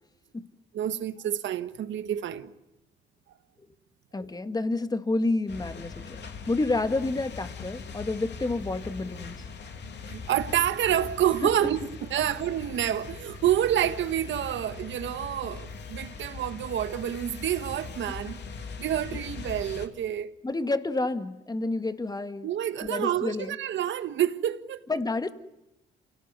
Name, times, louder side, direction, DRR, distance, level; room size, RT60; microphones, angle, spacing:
voice 1, 0.7-2.5 10.1-18.4 18.8-20.3 22.4-24.8, right 11 dB, 70° right, 1.6 m, -28 dB
voice 2, 4.1-6.2 6.5-9.4 18.1-18.2 20.4-22.5 22.8-23.6 24.9-25.3, left 2 dB, 20° left, 1.9 m, -29 dB
sound 1, 5.5-19.9, left 4 dB, 60° left, 3.2 m, -41 dB
28.5 x 18.5 x 9.5 m
cardioid pair, 90°, 20 cm